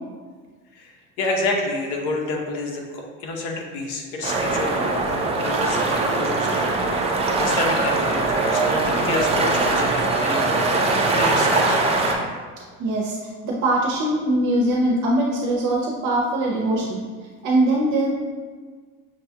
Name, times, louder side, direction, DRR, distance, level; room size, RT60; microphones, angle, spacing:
voice 1, 0.7-11.8, left 2 dB, 75° left, 1 dB, 0.9 m, -29 dB
sound 1, 4.2-12.1, right 3 dB, 20° right, 0.4 m, -21 dB
voice 2, 12.8-13.2 13.4-17.0 17.4-18.1, right 1 dB, 55° right, -3 dB, 0.7 m, -21 dB
6.3 x 2.3 x 2.7 m, 1.5 s
cardioid pair, 140°, 36 cm